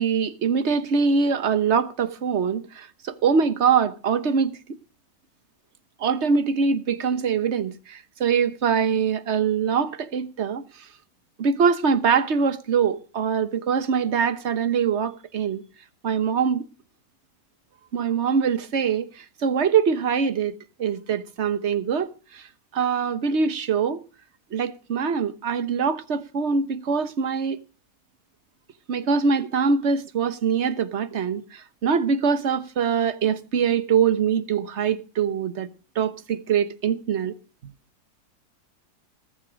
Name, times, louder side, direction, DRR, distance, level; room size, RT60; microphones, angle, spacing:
voice 1, 0.0-4.8 6.0-10.6 11.4-15.6 16.0-16.6 17.9-22.5 22.7-24.0 24.5-27.6 28.9-35.7 35.9-37.3, right 6 dB, 50° right, 1.2 m, -23 dB
19.0 x 9.6 x 5.0 m
omnidirectional pair, 1.6 m